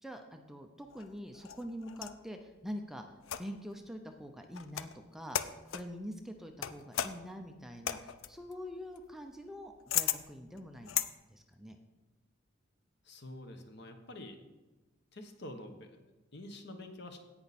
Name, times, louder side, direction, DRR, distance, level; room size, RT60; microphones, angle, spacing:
voice 1, 0.0-11.0 11.3-11.8, equal, ahead, 4 dB, 0.6 m, -45 dB
sound 1, 0.9-2.2 3.2-3.7 4.5-5.0 5.3-5.9 6.6-11.1, left 10 dB, 80° left, 0.5 m, -37 dB
voice 2, 13.0-14.4 15.1-17.2, left 1 dB, 55° left, 6 dB, 1.2 m, -47 dB
16.5 x 5.8 x 4.2 m, 1.1 s
head